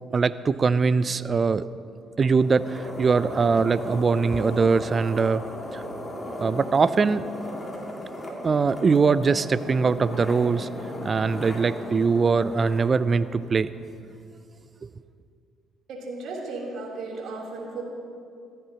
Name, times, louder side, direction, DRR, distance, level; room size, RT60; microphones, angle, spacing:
voice 1, 0.1-1.7 2.2-5.4 5.7-5.8 6.4-7.3 8.2-10.7 11.0-13.7 14.8-14.9, right 5 dB, 40° right, 16 dB, 0.4 m, -22 dB
sound 1, 2.3-13.8, left 1 dB, 25° left, 2.5 m, -36 dB
voice 2, 15.9-17.8, right 3 dB, 70° right, -3 dB, 3.3 m, -35 dB
15.0 x 14.5 x 2.9 m, 2.4 s
supercardioid pair, 65°, 0 cm